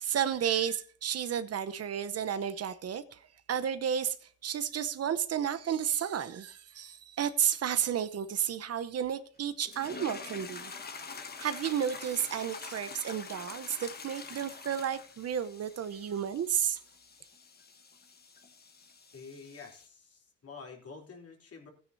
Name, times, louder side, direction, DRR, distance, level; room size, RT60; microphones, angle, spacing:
voice 1, 0.0-3.2 3.5-4.2 4.4-10.7 11.4-16.8, right 9 dB, 55° right, 0.9 m, -32 dB
sound 1, 9.7-19.9, left 4 dB, 30° left, 1.4 m, -46 dB
voice 2, 19.1-21.7, left 4 dB, 50° left, 3.3 m, -48 dB
15.5 x 9.7 x 2.7 m
cardioid pair, 90°, 30 cm